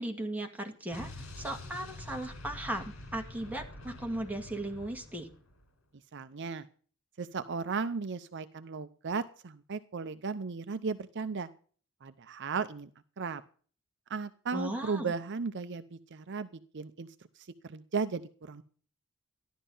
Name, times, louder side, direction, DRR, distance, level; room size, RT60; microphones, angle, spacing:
voice 1, 0.0-5.3 14.5-15.1, right 1 dB, 10° right, 2 dB, 2.2 m, -37 dB
Explosion, 0.9-5.7, left 1 dB, 85° left, 4.3 m, -46 dB
voice 2, 6.1-6.7 7.2-11.5 12.0-12.9 13.2-13.4 14.1-17.1 17.6-18.6, right 5 dB, 55° right, 11 dB, 0.7 m, -35 dB
14.5 x 11.5 x 5.5 m, 0.43 s
head